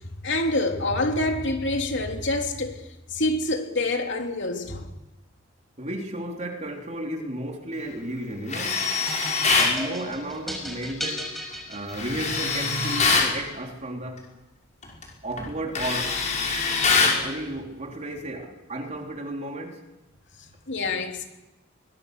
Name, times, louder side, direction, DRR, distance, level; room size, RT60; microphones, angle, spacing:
voice 1, 0.2-2.8 3.1-4.9 16.7-16.8 20.4-21.2, left 2 dB, 65° left, 3.2 m, -26 dB
voice 2, 5.8-8.9 9.5-14.3 15.2-16.8 17.2-19.8, right 1 dB, 35° right, 3.4 m, -34 dB
Tools, 8.5-9.8 11.9-13.3 14.8-15.0 15.4-17.2, left 4 dB, 40° left, 5.5 m, -23 dB
sound 1, 9.1-12.4, equal, ahead, 5.1 m, -35 dB
23.0 x 22.0 x 6.8 m
head